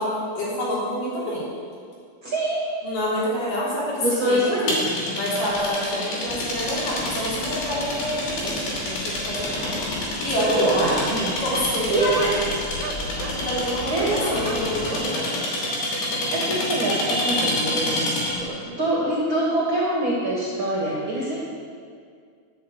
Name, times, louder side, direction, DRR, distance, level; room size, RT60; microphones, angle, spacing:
voice 1, 0.0-1.5 2.8-4.5 5.1-9.9 10.2-11.0 11.4-12.3 13.3-15.4, equal, 70° left, -6 dB, 4.8 m, -27 dB
voice 2, 2.2-2.7 3.4-3.6 4.0-4.8 10.5-11.4 11.9-12.4 13.9-14.4 16.1-18.0 18.4-21.4, right 1 dB, 40° right, -4 dB, 2.5 m, -25 dB
sound 1, 4.7-18.5, left 1 dB, 85° left, 4.6 m, -28 dB
Paddington - Train station, 6.3-14.9, left 1 dB, 20° left, 2.1 m, -36 dB
sound 2, 8.6-8.7 9.6-9.7 10.0-10.1 10.3-10.4 11.5-11.7 12.1-12.4 12.8-13.4 14.4-15.1, right 8 dB, 85° right, 2.5 m, -36 dB
12.0 x 7.6 x 8.4 m, 2.1 s
omnidirectional pair, 4.0 m